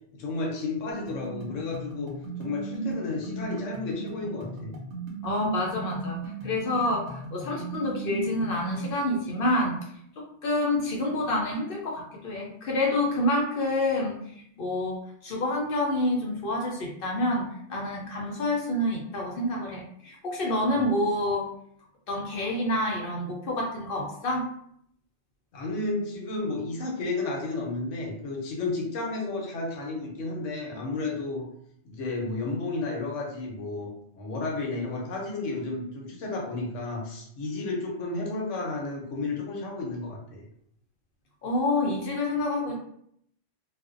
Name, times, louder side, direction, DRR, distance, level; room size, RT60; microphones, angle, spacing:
voice 1, 0.1-2.1 2.4-4.8 25.5-31.5 31.8-40.4, left 3 dB, 80° left, 0 dB, 1.0 m, -32 dB
sound 1, 0.9-8.9, right 3 dB, 65° right, 0.9 m, -37 dB
voice 2, 5.2-9.8 10.4-14.2 14.6-15.0 15.2-21.5 22.1-24.5 41.4-42.8, left 1 dB, 60° left, -1 dB, 0.7 m, -28 dB
2.4 x 2.1 x 2.4 m, 0.70 s
omnidirectional pair, 1.3 m